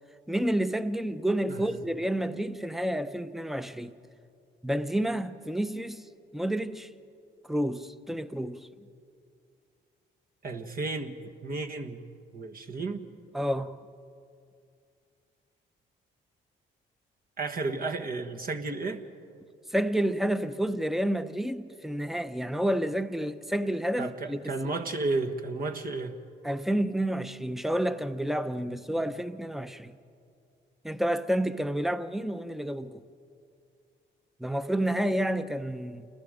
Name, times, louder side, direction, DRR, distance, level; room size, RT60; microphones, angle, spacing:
voice 1, 0.3-3.9 4.6-6.0 6.3-6.9 7.5-8.6 13.3-13.7 19.7-24.4 26.4-29.9 30.8-33.0 34.4-36.1, right 1 dB, ahead, 0.8 m, -29 dB
voice 2, 10.4-12.0 12.3-13.0 17.4-19.0 24.0-26.2, right 3 dB, 45° right, 1.5 m, -33 dB
28.5 x 20.5 x 5.2 m
cardioid pair, 90°, 20 cm